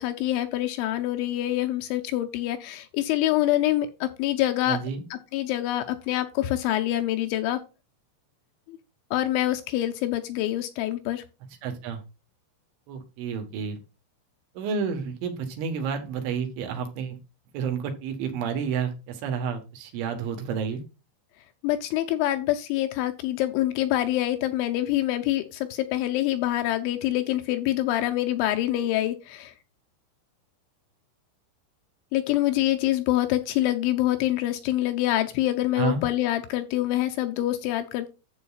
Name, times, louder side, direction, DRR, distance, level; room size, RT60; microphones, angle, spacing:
voice 1, 0.0-4.8 5.1-7.6 8.7-8.8 9.1-11.2 21.6-29.5 32.1-38.1, left 14 dB, 80° left, 6 dB, 2.9 m, -26 dB
voice 2, 4.7-5.0 11.6-12.0 12.9-13.8 14.6-17.2 17.5-20.8 35.8-36.0, right 6 dB, 75° right, 5 dB, 3.6 m, -30 dB
11.0 x 7.7 x 2.4 m, 0.29 s
omnidirectional pair, 5.7 m